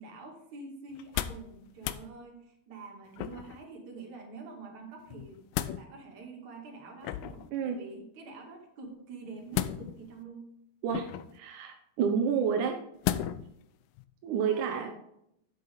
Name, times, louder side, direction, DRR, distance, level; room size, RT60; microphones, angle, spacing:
voice 1, 0.0-5.4 5.8-10.5 14.4-14.9, right 3 dB, 55° right, 0 dB, 3.0 m, -46 dB
sound 1, 0.9-1.5 1.8-2.1 3.2-3.6 5.1-5.8 7.0-7.5 9.5-10.1 10.9-11.4 13.0-13.5 14.0-14.1, left 12 dB, 85° left, 2.0 m, -34 dB
voice 2, 11.3-12.8 14.2-14.9, right 7 dB, 75° right, 4 dB, 1.9 m, -29 dB
11.5 x 7.8 x 3.5 m, 0.78 s
omnidirectional pair, 4.5 m